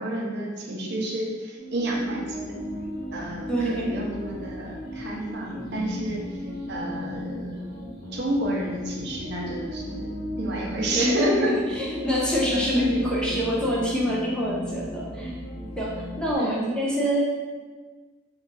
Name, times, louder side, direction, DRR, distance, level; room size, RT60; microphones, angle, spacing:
voice 1, 0.0-2.5 3.1-6.4 6.7-7.5 8.1-11.6 12.5-13.0 16.4-16.6, right 1 dB, 55° right, -1 dB, 0.5 m, -30 dB
sound 1, 1.6-16.3, equal, 50° left, 0.8 m, -35 dB
voice 2, 3.5-4.0 10.9-11.3 11.8-15.3 15.8-17.2, equal, 5° left, -5 dB, 0.4 m, -25 dB
2.6 x 2.3 x 3.8 m, 1.4 s
head